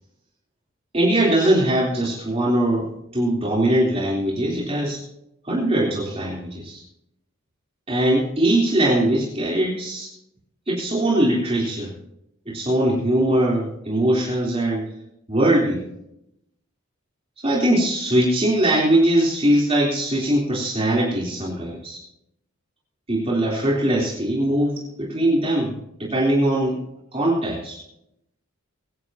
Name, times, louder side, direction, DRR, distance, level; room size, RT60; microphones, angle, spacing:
voice 1, 0.9-5.0 5.4-6.8 7.9-10.1 10.7-11.9 12.5-14.9 15.3-15.9 17.4-22.0 23.1-25.7 26.0-26.8 27.1-27.8, right 1 dB, 30° right, -4 dB, 3.6 m, -21 dB
24.0 x 11.0 x 2.9 m, 0.80 s
head